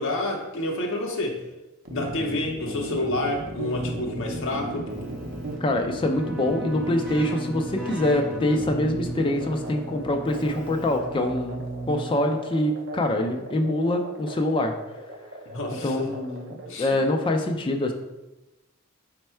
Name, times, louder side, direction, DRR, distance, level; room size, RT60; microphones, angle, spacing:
voice 1, 0.0-1.4 1.9-4.9 15.5-16.1 16.6-17.0, left 1 dB, 65° left, 1 dB, 0.6 m, -29 dB
sound 1, 1.9-16.7, right 1 dB, 60° right, 0.6 m, -38 dB
Keyboard (musical), 3.7-12.4, right 2 dB, 10° right, 1.5 m, -37 dB
voice 2, 5.6-14.7 15.8-17.9, left 1 dB, 25° left, 3 dB, 0.4 m, -25 dB
4.4 x 2.1 x 4.3 m, 1.0 s
head